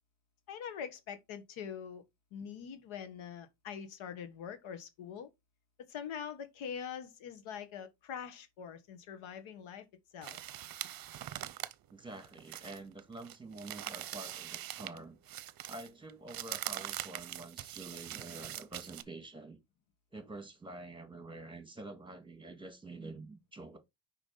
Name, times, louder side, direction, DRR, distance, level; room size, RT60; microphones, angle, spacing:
voice 1, 0.5-2.0 2.3-5.3 5.9-9.8 10.1-10.4, left 7 dB, 85° left, 1.4 m, -44 dB
sound 1, 10.2-15.0 15.3-19.0, right 12 dB, 50° right, 0.7 m, -43 dB
voice 2, 11.9-15.2 15.7-19.6 20.1-23.8, right 2 dB, 10° right, 1.7 m, -47 dB
6.4 x 5.0 x 3.8 m
cardioid pair, 110°, 46 cm